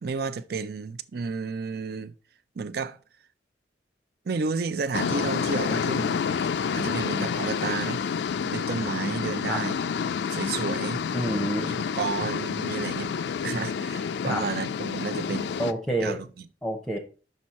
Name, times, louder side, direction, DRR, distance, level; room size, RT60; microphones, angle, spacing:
voice 1, 0.0-2.1 2.6-3.0 4.3-6.3 6.7-8.0 8.4-9.8 10.3-11.0 12.0-13.1 13.4-15.5 16.0-16.3, right 4 dB, 60° right, 0.4 m, -31 dB
sound 1, 4.9-15.7, left 6 dB, 70° left, 0.3 m, -29 dB
voice 2, 11.1-11.8 14.3-14.4 15.6-16.2 16.6-17.0, right 1 dB, 5° left, 0.7 m, -28 dB
6.0 x 5.4 x 4.1 m
head